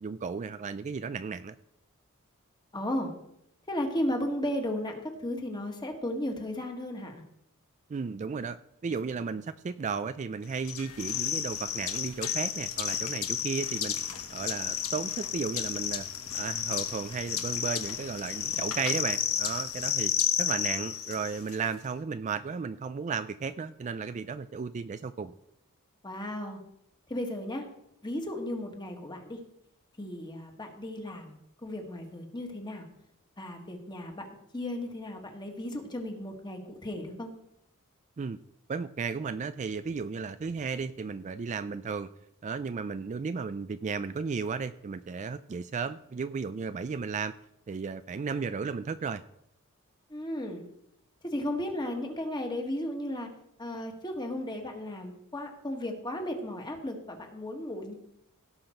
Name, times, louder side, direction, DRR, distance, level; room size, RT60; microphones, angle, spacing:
voice 1, 0.0-1.5 7.9-8.6 8.8-13.9 14.3-16.1 16.3-20.1 20.4-25.3 38.2-38.4 38.7-42.1 42.4-47.3 47.7-49.2, right 5 dB, 35° right, 12 dB, 0.3 m, -34 dB
voice 2, 2.7-3.1 3.7-7.2 26.0-26.6 27.1-27.6 28.0-29.4 30.0-32.8 33.4-34.2 34.5-37.3 50.1-50.6 51.2-53.3 53.6-57.9, left 1 dB, 20° left, 3 dB, 1.6 m, -35 dB
sound 1, 10.6-21.5, left 9 dB, 75° left, 1.1 m, -32 dB
17.0 x 5.8 x 4.4 m, 0.77 s
head